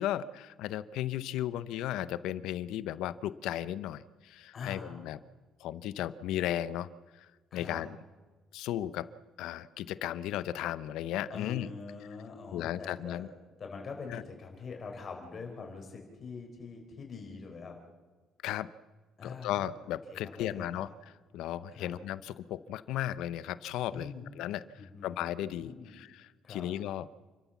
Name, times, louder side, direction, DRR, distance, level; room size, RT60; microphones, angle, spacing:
voice 1, 0.0-5.2 5.6-6.9 7.1-8.0 8.5-9.1 9.4-11.7 12.5-13.3 14.1-14.2 18.4-18.7 19.2-20.9 21.3-24.1 24.4-24.6 25.0-27.1, left 12 dB, 85° left, 16 dB, 0.7 m, -35 dB
voice 2, 4.5-5.1 7.5-7.8 11.3-13.3 13.6-17.8 19.2-19.7 20.1-20.8 21.7-21.9 23.9-24.3 24.8-26.0 26.4-26.7, left 5 dB, 35° left, 2 dB, 4.3 m, -44 dB
29.0 x 13.0 x 7.2 m, 1.3 s
cardioid pair, 160°, 0 cm